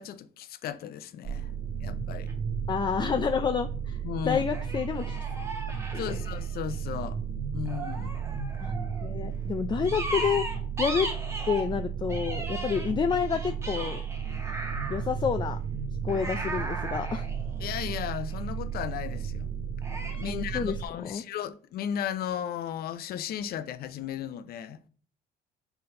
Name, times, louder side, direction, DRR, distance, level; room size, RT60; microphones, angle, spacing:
voice 1, 0.0-1.5 1.8-2.3 4.0-4.4 6.0-7.2 7.5-8.2 17.6-19.5 20.1-24.8, left 9 dB, 65° left, 0.7 m, -35 dB
sound 1, 1.2-20.9, right 7 dB, 55° right, 1.7 m, -34 dB
sound 2, 2.1-2.3 4.5-6.7 7.7-9.1 9.8-11.7 12.1-15.1 16.1-18.3 19.8-20.3, right 2 dB, 15° right, 1.7 m, -37 dB
voice 2, 2.7-5.2 5.9-6.2 8.6-8.7 9.0-10.5 10.8-11.1 11.5-14.0 14.9-15.6 16.0-17.3 20.3-20.8 21.1-21.2, left 6 dB, 25° left, 0.5 m, -29 dB
5.8 x 4.1 x 5.3 m
cardioid pair, 110°, 17 cm